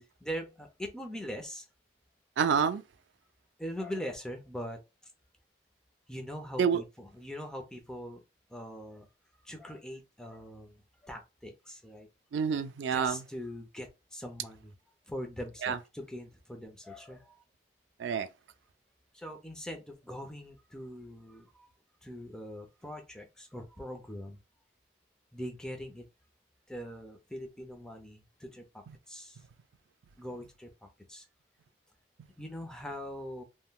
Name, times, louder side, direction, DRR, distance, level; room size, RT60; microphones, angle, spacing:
voice 1, 0.2-1.6 3.6-4.8 6.1-8.2 8.5-9.1 9.4-12.1 12.9-14.7 15.1-17.4 19.1-21.7 22.0-24.4 25.3-26.0 26.7-28.6 29.1-29.4 30.2-30.7 31.1-31.2 32.4-33.4, equal, 5° left, 0.5 m, -42 dB
voice 2, 2.4-2.8 6.6-6.8 12.3-13.2 15.6-15.8 18.0-18.3 28.9-29.0, right 6 dB, 90° right, 0.3 m, -28 dB
3.5 x 2.2 x 2.3 m
head